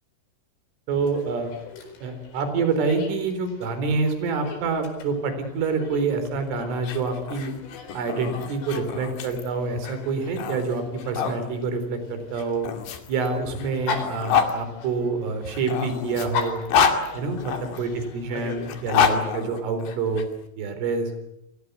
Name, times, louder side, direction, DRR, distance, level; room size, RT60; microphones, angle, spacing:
Dog, 0.9-19.2, left 5 dB, 75° left, 7.2 m, -40 dB
voice 1, 0.9-1.5 2.0-7.5 7.9-12.7 13.1-16.6 17.1-20.2 20.6-21.1, right 4 dB, 75° right, 9 dB, 6.6 m, -27 dB
sound 1, 6.7-11.4 12.3-14.5 15.4-17.8 18.6-20.2, left 6 dB, 60° left, 4.1 m, -27 dB
30.0 x 22.0 x 8.2 m, 0.83 s
omnidirectional pair, 5.7 m